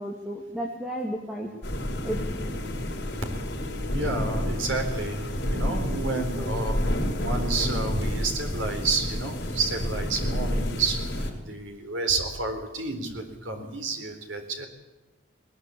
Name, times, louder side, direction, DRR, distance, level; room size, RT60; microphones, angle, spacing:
voice 1, 0.0-1.5 2.0-2.2 6.1-6.7, right 1 dB, ahead, -1 dB, 2.3 m, -33 dB
sound 1, 1.6-11.3, left 1 dB, 60° left, 5.3 m, -29 dB
voice 2, 3.9-6.8 7.2-14.7, right 3 dB, 90° right, 5 dB, 4.1 m, -30 dB
20.5 x 20.5 x 8.5 m, 1.1 s
head